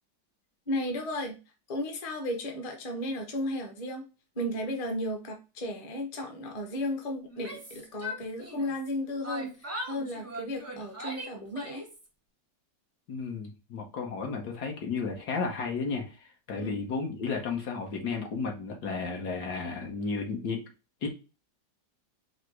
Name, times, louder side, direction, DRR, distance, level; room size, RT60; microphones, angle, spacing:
voice 1, 0.7-1.4 1.7-4.1 4.3-11.8 16.6-16.8, left 1 dB, 30° left, 2 dB, 0.7 m, -34 dB
Yell, 7.3-8.9 9.2-12.1, equal, 25° right, 0.3 m, -40 dB
voice 2, 13.1-16.0 16.5-20.6 21.0-21.1, left 4 dB, 65° left, 1 dB, 1.5 m, -33 dB
4.8 x 2.1 x 4.6 m, 0.31 s
omnidirectional pair, 1.9 m